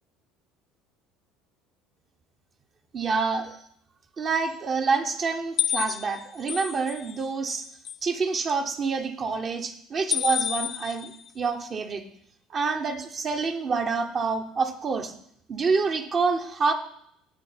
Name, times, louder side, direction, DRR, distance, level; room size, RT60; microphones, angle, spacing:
voice 1, 2.9-3.5 4.2-7.7 8.0-12.0 12.5-15.1 15.5-16.7, right 4 dB, 40° right, 5 dB, 1.1 m, -27 dB
sound 1, 5.6-7.2 7.5-8.0 10.1-11.3, left 9 dB, 45° left, 0.3 m, -29 dB
12.0 x 4.3 x 5.8 m, 0.71 s
figure-of-eight pair, 60°, 0 cm